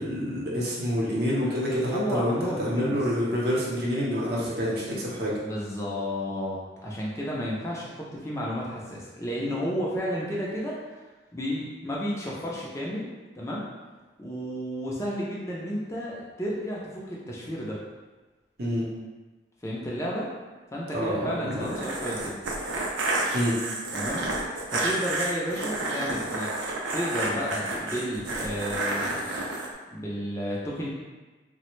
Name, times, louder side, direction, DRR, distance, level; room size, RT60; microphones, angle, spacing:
voice 1, 0.0-5.4 18.6-18.9 20.9-21.7 23.3-23.6, equal, 55° right, -6 dB, 0.7 m, -27 dB
voice 2, 1.9-3.0 5.4-10.8 11.3-13.1 13.3-13.7 14.2-17.8 19.6-20.3 20.7-22.4 23.9-24.2 24.7-26.5 26.9-29.4 29.9-30.9, equal, 15° left, -5 dB, 0.4 m, -32 dB
sound 1, 21.5-29.7, right 2 dB, 90° right, 0.5 m, -30 dB
3.2 x 2.0 x 3.0 m, 1.2 s
head